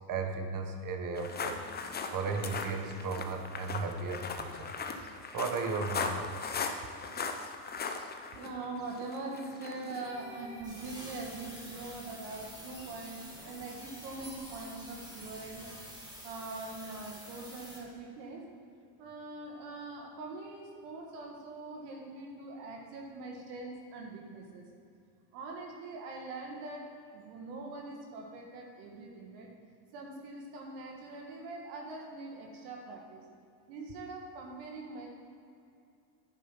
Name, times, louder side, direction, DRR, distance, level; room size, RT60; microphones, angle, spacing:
voice 1, 0.1-1.6 2.1-4.7 5.3-6.5, right 4 dB, 40° right, 5 dB, 1.2 m, -35 dB
sound 1, 1.2-10.1, left 5 dB, 20° left, 0.6 m, -38 dB
voice 2, 8.4-15.7 16.2-18.5 19.0-24.7 25.3-26.9 27.1-29.5 29.9-33.2 33.7-35.1, right 3 dB, 80° right, 0 dB, 2.0 m, -43 dB
sound 2, 10.0-17.8, equal, 10° right, 2.1 m, -48 dB
10.5 x 5.3 x 5.8 m, 2.5 s
supercardioid pair, 110°, 49 cm